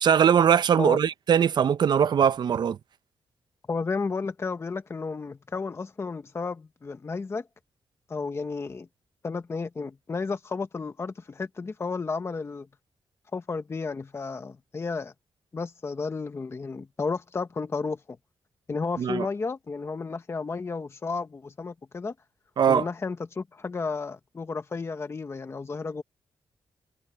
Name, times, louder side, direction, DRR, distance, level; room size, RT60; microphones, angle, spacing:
voice 1, 0.0-2.8 19.0-19.3 22.6-22.9, right 8 dB, 60° right, 0.6 m, -21 dB
voice 2, 3.7-7.5 8.1-8.9 9.2-12.7 13.3-15.1 15.5-18.2 18.7-22.1 22.7-26.0, left 4 dB, 30° left, 1.0 m, -32 dB
wide cardioid pair, 125°, 8 cm